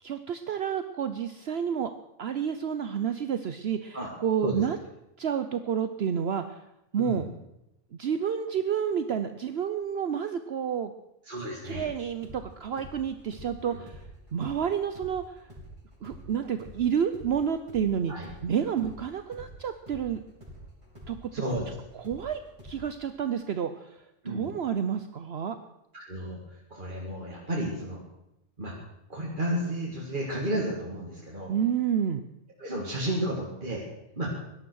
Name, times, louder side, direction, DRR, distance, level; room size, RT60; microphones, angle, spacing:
voice 1, 0.0-1.9 2.2-4.8 5.2-6.6 6.9-7.3 7.9-10.9 11.4-14.0 14.3-15.4 16.0-20.2 21.1-21.3 21.9-25.6 31.5-32.2, right 8 dB, 60° right, 9 dB, 1.0 m, -30 dB
voice 2, 11.3-11.9 18.1-18.3 21.3-21.7 24.2-24.5 25.9-26.4 26.7-28.0 28.6-28.7 29.1-31.5 32.6-33.8 34.2-34.3, right 1 dB, 40° right, -4 dB, 2.6 m, -32 dB
sound 1, 11.7-19.5 19.9-23.1, equal, 25° right, 5.4 m, -47 dB
17.5 x 12.0 x 6.4 m, 0.87 s
omnidirectional pair, 1.3 m